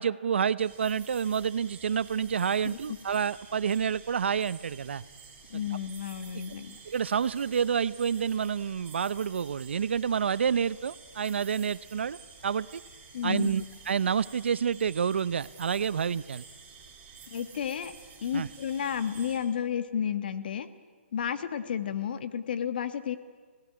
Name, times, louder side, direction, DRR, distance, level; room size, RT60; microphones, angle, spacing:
voice 1, 0.0-5.0 6.9-12.2 12.4-12.8 13.2-16.4 18.3-18.5, right 7 dB, 65° right, 19 dB, 0.6 m, -28 dB
sound 1, 0.6-19.4, right 5 dB, 20° right, 5.4 m, -51 dB
voice 2, 2.6-3.0 5.5-6.8 13.1-13.5 17.3-17.9 18.2-20.7 21.1-23.2, left 8 dB, 45° left, 11 dB, 1.5 m, -32 dB
25.5 x 18.0 x 9.6 m, 1.5 s
hypercardioid pair, 165°, 7 cm